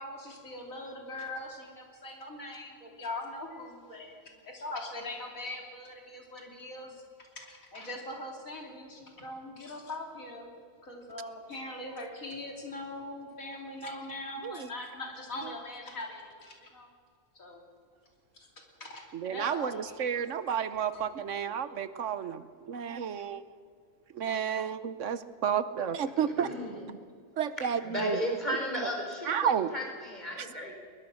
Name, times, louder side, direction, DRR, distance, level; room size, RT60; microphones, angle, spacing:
voice 1, 0.0-7.0 7.4-10.5 10.8-16.9 17.4-17.6 18.3-18.5 18.8-19.0 19.3-20.6 20.9-21.0, left 1 dB, 90° left, 1 dB, 3.6 m, -41 dB
voice 2, 19.2-23.4 24.1-26.5 27.4-28.2 29.3-29.7, right 8 dB, 70° right, 13 dB, 1.1 m, -31 dB
voice 3, 26.4-26.9 27.8-30.7, equal, 35° left, 1 dB, 4.4 m, -34 dB
21.0 x 21.0 x 6.3 m, 2.1 s
omnidirectional pair, 1.4 m